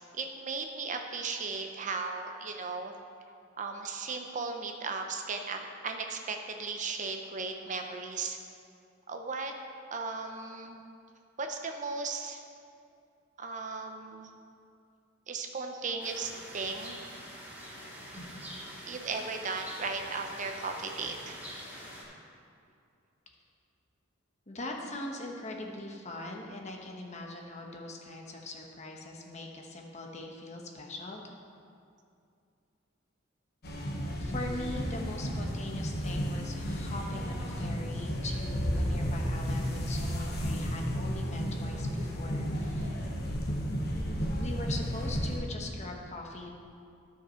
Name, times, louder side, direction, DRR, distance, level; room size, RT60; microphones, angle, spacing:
voice 1, 0.1-2.9 3.6-8.4 9.1-9.5 9.9-10.8 11.4-12.4 13.4-14.3 15.3-17.0 18.9-21.4, right 4 dB, 40° right, 4 dB, 0.6 m, -36 dB
sound 1, 16.0-22.0, equal, 10° right, 2.4 m, -45 dB
voice 2, 24.5-31.2 34.2-43.0 44.4-46.5, left 2 dB, 35° left, 0 dB, 1.0 m, -41 dB
sound 2, 33.6-45.4, equal, 55° left, 1.2 m, -33 dB
13.0 x 5.9 x 4.4 m, 2.4 s
head